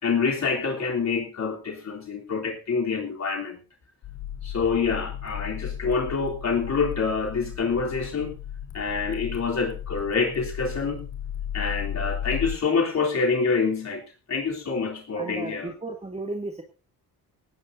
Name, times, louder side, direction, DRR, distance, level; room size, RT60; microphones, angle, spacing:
voice 1, 0.0-3.6 4.4-8.3 8.7-11.0 11.5-15.7, left 5 dB, 45° left, 0 dB, 3.6 m, -26 dB
sound 1, 4.0-12.6, left 10 dB, 90° left, 3.7 m, -35 dB
voice 2, 15.1-16.6, right 2 dB, 15° right, 2 dB, 2.6 m, -34 dB
18.5 x 17.0 x 2.7 m, 0.32 s
cardioid pair, 90°, 37 cm